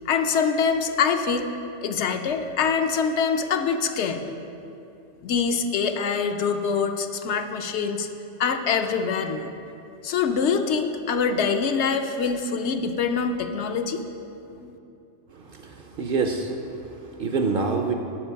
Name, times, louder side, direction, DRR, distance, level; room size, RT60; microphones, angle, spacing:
voice 1, 0.1-1.5 1.8-4.2 5.2-8.1 8.4-9.5 10.0-14.0 14.6-14.8, left 6 dB, 70° left, 6 dB, 0.9 m, -24 dB
voice 2, 15.3-17.9, right 4 dB, 55° right, 4 dB, 0.7 m, -27 dB
11.5 x 5.2 x 5.6 m, 2.8 s
omnidirectional pair, 1.3 m